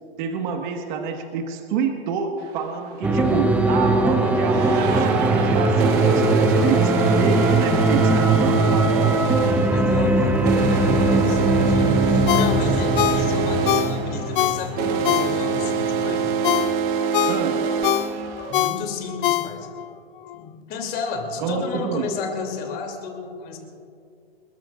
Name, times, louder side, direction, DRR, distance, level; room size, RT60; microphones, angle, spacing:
voice 1, 0.2-9.7 10.2-10.3 17.2-17.7 21.4-22.1, right 5 dB, 50° right, 3 dB, 1.6 m, -28 dB
sound 1, 2.4-2.5 3.5-18.5, right 5 dB, 30° right, 1.0 m, -25 dB
sound 2, 3.0-16.7, right 2 dB, 5° right, 0.6 m, -21 dB
voice 2, 9.7-16.4 18.5-19.7 20.3-23.6, left 5 dB, 30° left, 1 dB, 2.9 m, -32 dB
Ringtone, 12.3-15.7 16.1-19.9 20.3-20.4, left 14 dB, 55° left, 0.6 m, -24 dB
29.5 x 14.0 x 2.5 m, 2.5 s
hypercardioid pair, 150°, 31 cm